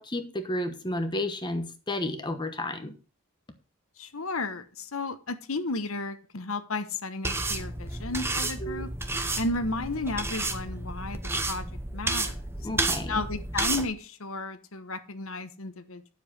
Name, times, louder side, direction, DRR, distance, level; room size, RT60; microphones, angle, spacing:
voice 1, 0.0-3.0 8.6-8.8 12.6-13.2, left 1 dB, 20° left, 8 dB, 1.0 m, -32 dB
voice 2, 4.0-8.9 9.4-11.2 11.5-11.7 11.9-12.4 13.1-16.1, left 2 dB, 70° left, 11 dB, 1.2 m, -33 dB
sound 1, 7.2-13.8, right 2 dB, 10° right, 0.9 m, -31 dB
10.0 x 7.3 x 5.4 m, 0.35 s
head